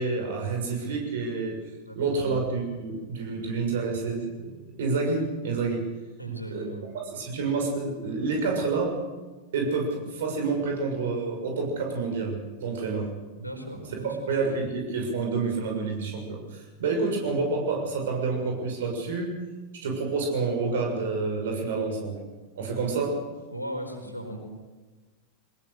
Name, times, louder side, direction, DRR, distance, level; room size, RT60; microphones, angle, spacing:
voice 1, 0.0-1.6 1.9-4.5 4.8-5.9 6.5-6.7 6.9-9.0 9.5-13.1 14.0-19.4 19.7-22.2 22.5-23.2, right 4 dB, 60° right, 2 dB, 6.6 m, -28 dB
voice 2, 1.8-2.3 6.2-6.9 13.4-14.2 23.5-24.4, right 1 dB, 90° left, 2 dB, 4.8 m, -37 dB
23.5 x 20.0 x 6.7 m, 1.3 s
figure-of-eight pair, 90°, 0 cm